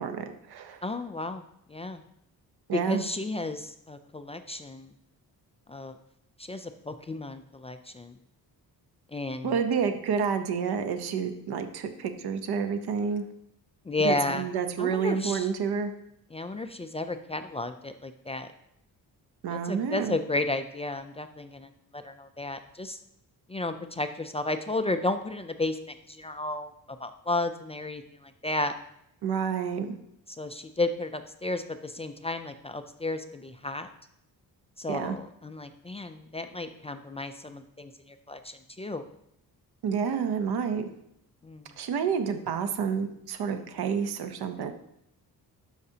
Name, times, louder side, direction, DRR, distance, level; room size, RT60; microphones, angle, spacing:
voice 1, 0.0-0.9 2.7-3.0 9.4-13.2 14.0-15.9 19.4-20.2 29.2-29.9 34.9-35.2 39.8-40.8 41.8-44.7, right 6 dB, 80° right, 8 dB, 0.8 m, -29 dB
voice 2, 0.8-1.4 1.7-2.0 2.7-4.9 5.7-5.9 6.5-8.1 9.1-9.6 13.9-14.5 14.8-15.5 16.3-18.5 19.5-21.7 22.0-23.0 23.5-25.8 26.1-26.7 27.0-28.0 28.4-28.7 30.4-33.9 34.8-37.9 38.3-39.0 41.4-41.6, left 2 dB, 20° left, 8 dB, 0.3 m, -32 dB
12.0 x 5.0 x 2.8 m, 0.76 s
cardioid pair, 125°, 38 cm